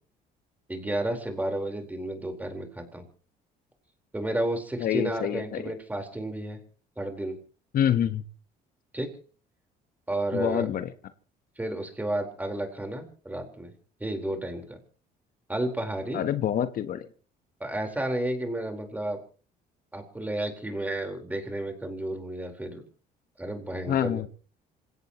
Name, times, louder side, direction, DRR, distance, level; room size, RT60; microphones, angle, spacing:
voice 1, 0.7-3.0 4.1-6.6 7.0-7.4 8.9-9.1 10.1-10.7 11.6-13.7 14.0-14.8 15.5-16.2 17.6-19.2 19.9-22.8 23.4-24.2, right 1 dB, 10° right, 4 dB, 4.2 m, -32 dB
voice 2, 4.8-5.7 7.7-8.2 10.3-10.9 16.1-17.1 23.9-24.3, left 10 dB, 60° left, 11 dB, 1.1 m, -26 dB
27.0 x 16.5 x 3.0 m, 0.40 s
cardioid pair, 110°, 17 cm